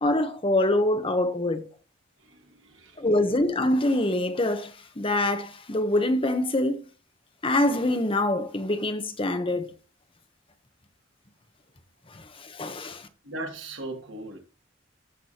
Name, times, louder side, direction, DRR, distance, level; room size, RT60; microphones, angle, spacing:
voice 1, 0.0-1.6 3.0-6.8 7.4-9.7 12.1-13.1, left 1 dB, 25° left, 1.0 m, -25 dB
voice 2, 2.2-3.1 13.2-14.4, right 2 dB, 70° right, 2.5 m, -38 dB
15.0 x 6.0 x 2.9 m
head